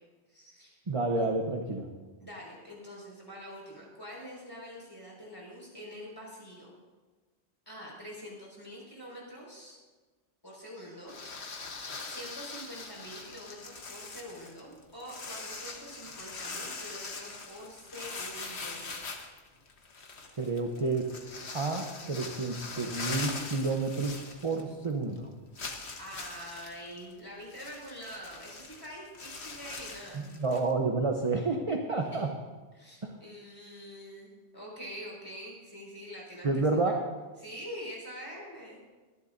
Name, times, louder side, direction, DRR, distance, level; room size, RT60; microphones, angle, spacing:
voice 1, 0.3-0.8 1.2-1.3 2.2-6.8 7.7-9.8 10.4-18.9 26.0-30.2 32.0-32.3 32.7-37.0 37.4-38.8, equal, 20° left, -4 dB, 5.3 m, -45 dB
voice 2, 0.9-1.9 20.4-21.1 21.5-24.1 24.4-25.3 30.1-32.3 33.0-33.1 36.4-37.0, right 3 dB, 30° right, 2 dB, 0.9 m, -30 dB
sound 1, 11.1-24.9 25.1-25.2 25.6-30.7, left 3 dB, 70° left, 1.5 m, -42 dB
24.0 x 11.5 x 2.7 m, 1.3 s
omnidirectional pair, 1.1 m